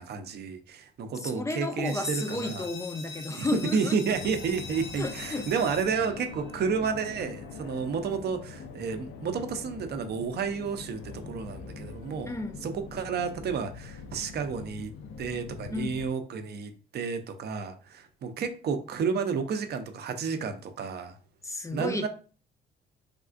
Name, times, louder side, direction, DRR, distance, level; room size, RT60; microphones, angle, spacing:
voice 1, 0.0-2.7 3.3-3.5 3.7-12.3 12.6-14.9 15.2-21.1 21.7-22.1, right 5 dB, 55° right, 0.5 m, -31 dB
voice 2, 1.1-4.0 4.2-4.3 5.0-5.5 12.3-12.6 15.7-16.0 21.4-22.1, left 2 dB, 15° left, 0.4 m, -33 dB
sound 1, 1.9-7.3, left 4 dB, 65° left, 0.9 m, -44 dB
Fixed-wing aircraft airplane, 4.1-16.1, left 5 dB, 80° left, 0.4 m, -43 dB
3.5 x 2.4 x 2.4 m
cardioid pair, 90°, 20 cm